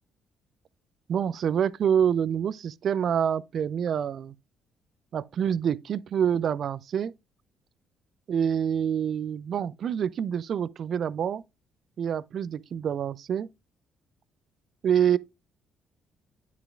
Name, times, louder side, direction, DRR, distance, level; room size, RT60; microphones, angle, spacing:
voice 1, 1.1-4.3 5.1-7.1 8.3-11.4 12.0-13.5 14.8-15.2, right 8 dB, 55° right, 0.4 m, -26 dB
9.2 x 5.8 x 2.3 m
hypercardioid pair, 45°, 0 cm